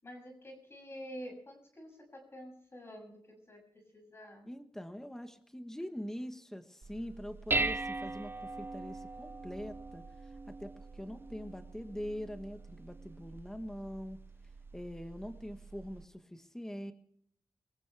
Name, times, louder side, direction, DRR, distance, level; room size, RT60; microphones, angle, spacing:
voice 1, 0.0-4.5, equal, 25° left, 3 dB, 6.9 m, -48 dB
voice 2, 4.4-14.2 14.7-16.9, equal, 5° left, 7 dB, 1.2 m, -43 dB
Dishes pots and pans, 6.8-16.1, right 3 dB, 25° right, 0.6 m, -40 dB
24.0 x 15.5 x 3.4 m, 0.64 s
wide cardioid pair, 175°, 9 cm